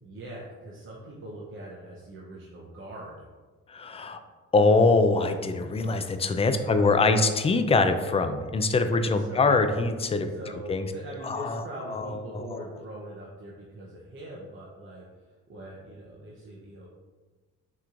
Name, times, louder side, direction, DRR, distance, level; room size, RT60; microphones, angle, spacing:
voice 1, 0.0-3.3 6.6-7.3 8.9-9.7 10.3-16.9, right 1 dB, 40° right, -4 dB, 0.8 m, -42 dB
voice 2, 3.7-4.2 4.5-10.3 10.7-10.9 11.2-12.6, left 3 dB, 20° left, 8 dB, 0.3 m, -24 dB
5.7 x 3.1 x 2.5 m, 1.3 s
cardioid pair, 90°, 30 cm